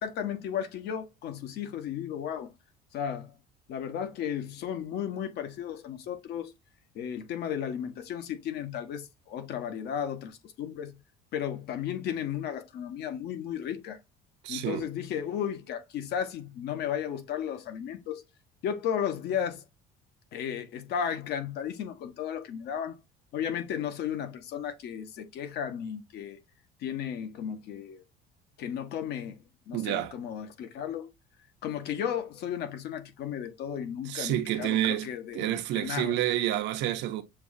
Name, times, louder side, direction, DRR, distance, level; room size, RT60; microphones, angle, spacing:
voice 1, 0.0-2.5 2.9-3.3 3.7-6.5 6.9-11.0 11.3-14.0 14.5-18.2 18.6-19.6 20.3-23.0 23.3-26.4 26.8-28.0 28.6-31.1 31.6-36.2, left 9 dB, 60° left, 1.0 m, -34 dB
voice 2, 14.4-14.9 29.7-30.1 33.6-33.8 34.0-35.1 35.3-37.2, right 13 dB, 65° right, 0.8 m, -29 dB
6.9 x 2.4 x 2.6 m
cardioid pair, 145°, 19 cm